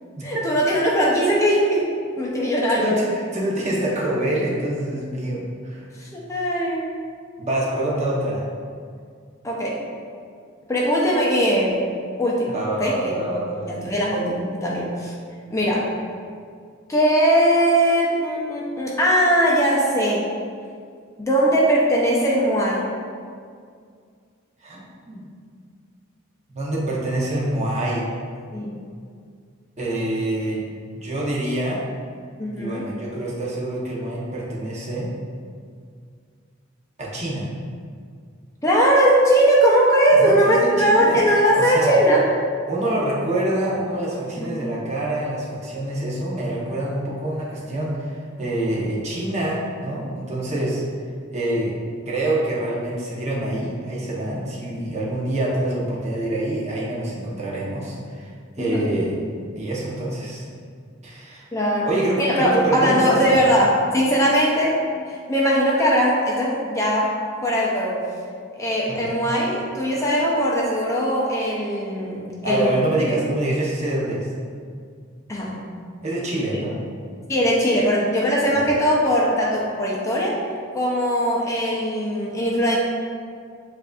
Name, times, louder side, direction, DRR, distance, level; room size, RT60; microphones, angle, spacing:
voice 1, 0.2-1.9 2.2-2.9 6.0-6.9 9.4-9.8 10.7-11.8 12.2-12.5 12.8-13.1 13.7-15.1 15.5-15.9 16.9-20.3 21.2-22.9 28.5-28.8 32.4-32.9 38.6-42.2 44.3-44.5 58.6-58.9 61.5-61.9 62.2-64.7 65.1-67.1 67.4-68.0 68.6-72.7 75.3-75.6 77.3-80.4 80.7-82.8, equal, 15° left, -4 dB, 0.5 m, -20 dB
voice 2, 2.8-5.8 7.4-8.4 12.5-14.0 24.6-25.2 26.5-28.1 29.8-31.8 32.5-35.1 37.0-37.5 40.2-41.3 41.5-42.0 42.7-50.8 51.3-51.7 52.1-58.3 58.6-59.2 59.5-60.5 61.0-61.4 61.8-63.5 68.9-69.2 72.4-74.3 76.0-76.7 78.6-78.7, right 1 dB, 35° right, -5 dB, 0.8 m, -26 dB
7.3 x 2.5 x 2.3 m, 2.1 s
head